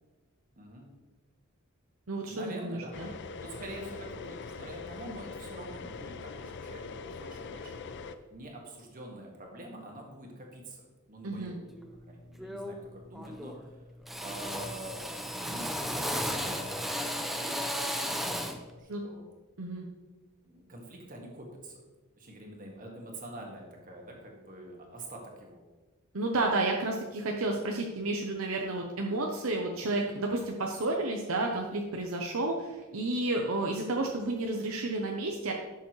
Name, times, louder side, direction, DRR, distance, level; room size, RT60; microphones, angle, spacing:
voice 1, 0.6-0.9 2.2-2.9 3.4-7.9 8.3-11.8 12.1-13.8 14.2-18.4 18.7-19.2 20.4-21.8 22.2-25.6, right 1 dB, 40° right, 0 dB, 1.9 m, -46 dB
voice 2, 2.1-3.1 11.2-11.6 18.9-19.0 19.6-19.9 26.1-35.5, right 2 dB, 65° right, 1 dB, 0.8 m, -31 dB
sound 1, 2.9-8.1, left 4 dB, 55° left, 0.5 m, -42 dB
Drill, 11.7-12.0 12.4-12.9 13.1-13.7 14.1-18.7, equal, ahead, 0.6 m, -34 dB
11.5 x 7.0 x 3.2 m, 1.2 s
head